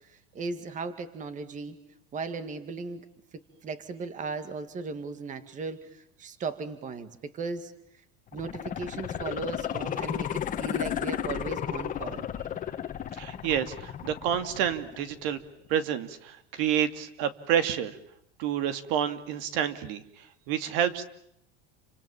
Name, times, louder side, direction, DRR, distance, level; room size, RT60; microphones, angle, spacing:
voice 1, 0.1-1.8 2.1-3.1 3.6-7.7 8.3-12.2, right 4 dB, 25° right, 10 dB, 2.1 m, -37 dB
sound 1, 8.3-15.3 15.7-15.8, left 9 dB, 25° left, 1.8 m, -34 dB
voice 2, 13.2-15.4 15.7-18.0 18.4-21.0, right 9 dB, 65° right, 10 dB, 2.6 m, -29 dB
30.0 x 26.0 x 7.3 m, 0.74 s
supercardioid pair, 150°, 30 cm